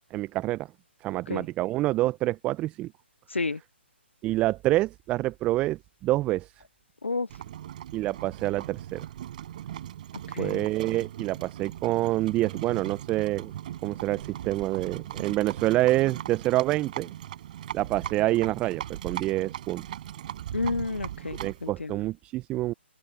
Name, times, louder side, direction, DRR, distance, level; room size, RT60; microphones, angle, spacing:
voice 1, 0.1-0.7 1.0-2.9 4.2-6.5 7.9-9.0 10.4-13.5 13.8-17.1 17.7-19.9 21.3-22.7, right 17 dB, 20° right, 0.7 m, -27 dB
voice 2, 3.3-3.6 7.0-7.3 10.3-10.7 20.5-22.0, left 3 dB, 80° left, 0.9 m, -31 dB
Livestock farm animals working animals, 7.3-21.7, right 11 dB, 40° right, 5.0 m, -39 dB
open air
figure-of-eight pair, 135°, 6 cm